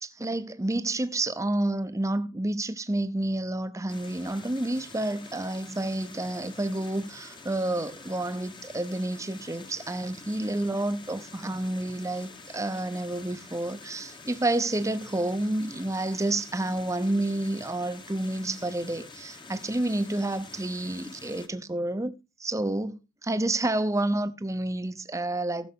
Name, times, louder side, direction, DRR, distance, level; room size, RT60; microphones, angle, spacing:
voice 1, 0.0-25.7, right 1 dB, 15° right, 0.7 m, -29 dB
sound 1, 3.9-21.5, left 3 dB, 25° left, 1.1 m, -47 dB
15.5 x 7.1 x 3.7 m
head